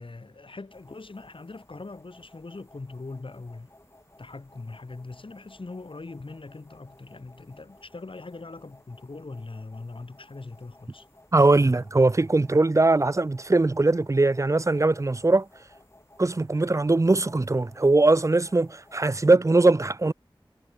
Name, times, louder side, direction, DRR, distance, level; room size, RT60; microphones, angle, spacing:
voice 1, 0.0-3.7 4.2-11.1, left 3 dB, 80° left, 6.9 m, -41 dB
sound 1, 0.7-19.3, left 1 dB, 30° left, 7.2 m, -56 dB
voice 2, 11.3-15.5 16.2-20.1, right 2 dB, 35° right, 0.5 m, -21 dB
wide cardioid pair, 60°, 9 cm